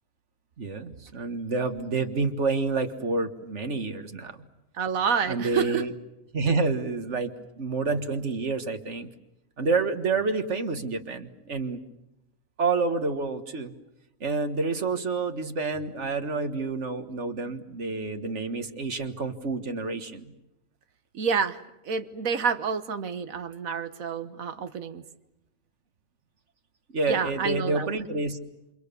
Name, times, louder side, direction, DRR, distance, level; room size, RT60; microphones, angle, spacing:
voice 1, 0.6-4.3 5.3-5.9 6.3-9.1 9.6-11.8 12.6-13.7 14.2-20.3 26.9-28.4, right 3 dB, 60° right, 8 dB, 1.9 m, -28 dB
voice 2, 4.7-5.9 21.1-21.6 21.9-25.0 27.1-27.9, right 6 dB, 90° right, 10 dB, 1.6 m, -28 dB
28.5 x 27.0 x 7.0 m, 0.90 s
omnidirectional pair, 1.4 m